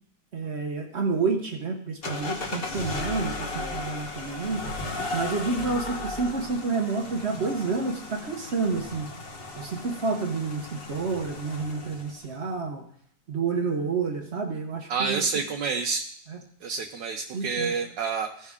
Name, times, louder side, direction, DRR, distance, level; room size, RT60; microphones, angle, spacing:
voice 1, 0.3-4.6 5.1-9.1 9.6-12.8 13.3-15.2 16.3-16.4 17.3-17.7, right 4 dB, 50° right, 3 dB, 0.9 m, -29 dB
sound 1, 2.0-12.3, left 2 dB, 40° left, 1.1 m, -36 dB
voice 2, 14.9-16.1 16.6-18.5, right 5 dB, 80° right, 3 dB, 1.3 m, -29 dB
15.5 x 5.7 x 3.6 m, 0.69 s
omnidirectional pair, 1.9 m